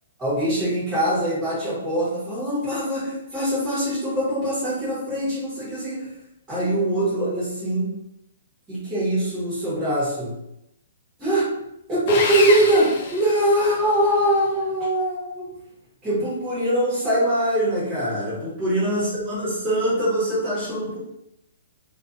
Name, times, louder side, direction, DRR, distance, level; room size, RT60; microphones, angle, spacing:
voice 1, 0.2-6.1 6.5-8.0 8.7-10.4 11.2-11.6 11.9-15.5 16.0-21.0, right 1 dB, 10° right, -11 dB, 1.2 m, -23 dB
Sawing, 12.1-14.0, left 4 dB, 30° left, 0.3 m, -27 dB
2.5 x 2.5 x 2.5 m, 0.82 s
hypercardioid pair, 175°, 0 cm